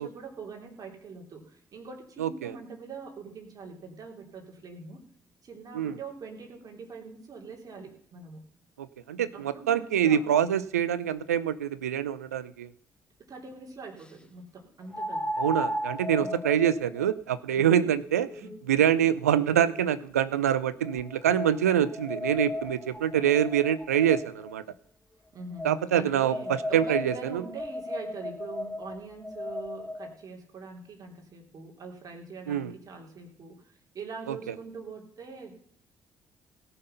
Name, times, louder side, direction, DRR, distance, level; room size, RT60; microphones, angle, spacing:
voice 1, 0.0-5.0 5.4-8.4 9.3-10.4 13.2-15.3 16.2-16.5 18.3-18.5 25.3-35.6, right 4 dB, 50° right, 2 dB, 3.1 m, -43 dB
voice 2, 2.2-2.6 5.7-5.9 8.8-12.7 15.4-18.3 18.7-24.6 25.6-27.4 32.5-32.7 34.3-34.4, right 9 dB, 90° right, 17 dB, 0.5 m, -25 dB
sound 1, 12.3-12.4 14.9-20.1 20.8-24.5 25.6-30.1, left 1 dB, 10° left, 1.2 m, -36 dB
17.5 x 5.9 x 6.7 m, 0.64 s
hypercardioid pair, 50°, 8 cm